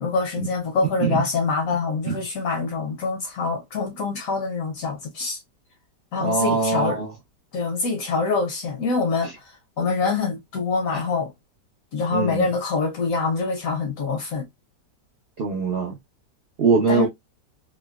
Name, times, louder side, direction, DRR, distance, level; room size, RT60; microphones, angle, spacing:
voice 1, 0.0-5.4 6.1-7.0 7.5-9.3 9.8-11.3 11.9-14.4 16.9-17.1, left 4 dB, 65° left, 0.9 m, -25 dB
voice 2, 6.2-7.1 12.1-12.5 15.4-16.0 16.6-17.1, right 4 dB, 75° right, 0.5 m, -22 dB
3.6 x 2.0 x 2.2 m
omnidirectional pair, 1.9 m